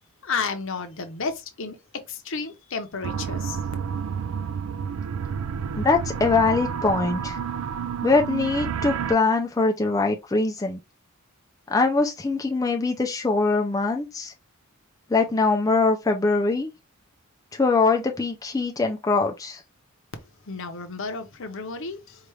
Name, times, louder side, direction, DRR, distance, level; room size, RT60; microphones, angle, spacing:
voice 1, 0.2-1.8 2.1-3.6 20.5-22.3, left 4 dB, 60° left, 0.8 m, -32 dB
sound 1, 3.0-9.1, right 7 dB, 70° right, 0.3 m, -30 dB
voice 2, 5.8-7.4 8.0-10.8 11.7-14.3 15.1-16.7 17.5-19.6, left 3 dB, 15° left, 0.4 m, -22 dB
4.7 x 2.5 x 3.1 m
head